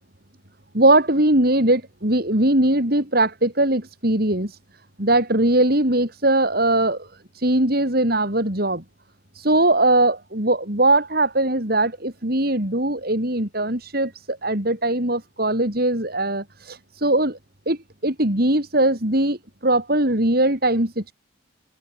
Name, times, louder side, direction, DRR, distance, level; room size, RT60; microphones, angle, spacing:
voice 1, 0.7-4.6 5.0-7.1 7.3-8.8 9.3-17.4 17.7-21.1, right 1 dB, 50° right, 4.4 m, -20 dB
head